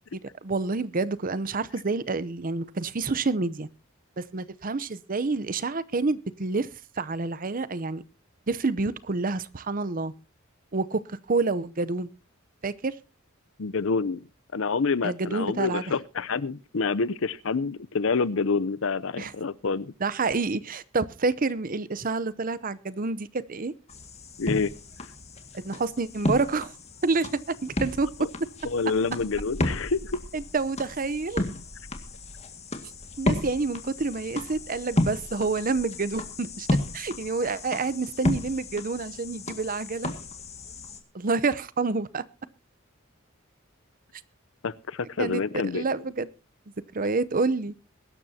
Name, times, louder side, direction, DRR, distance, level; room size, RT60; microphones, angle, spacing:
voice 1, 0.1-3.7 4.2-6.7 7.0-8.0 8.5-10.1 10.7-12.1 12.6-12.9 15.0-15.8 19.2-19.3 20.0-23.7 25.5-26.7 27.0-28.1 30.3-31.5 33.2-36.7 36.9-40.1 41.1-42.2 45.2-45.4 45.7-46.3 46.9-47.7, right 3 dB, 40° right, 0.7 m, -28 dB
voice 2, 13.6-14.2 14.5-19.9 24.4-24.7 28.6-30.2 44.6-45.8, left 4 dB, 70° left, 0.7 m, -27 dB
sound 1, 23.9-41.0, left 1 dB, 30° left, 2.0 m, -33 dB
22.5 x 12.0 x 2.8 m
head